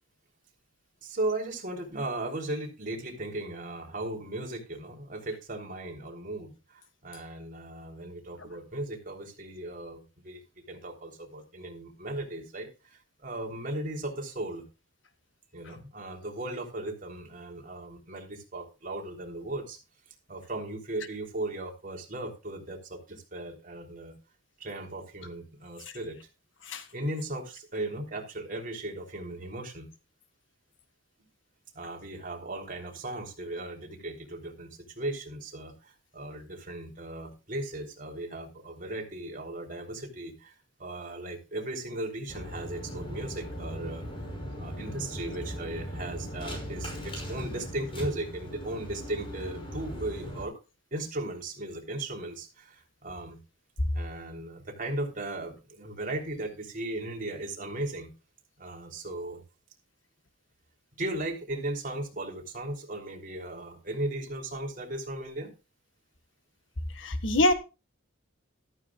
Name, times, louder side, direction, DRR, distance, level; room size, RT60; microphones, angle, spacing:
voice 1, 1.0-10.4 10.7-12.7 13.2-14.7 15.5-19.8 20.3-24.2 24.6-26.2 26.9-29.9 31.8-44.1 44.6-50.6 50.9-53.4 53.9-58.1 58.6-59.4 61.0-65.5, right 1 dB, 45° right, 3.4 m, -37 dB
sound 1, 42.3-50.4, equal, 25° left, 5.6 m, -38 dB
voice 2, 67.0-67.5, left 1 dB, 75° left, 1.6 m, -24 dB
14.0 x 13.0 x 2.4 m
head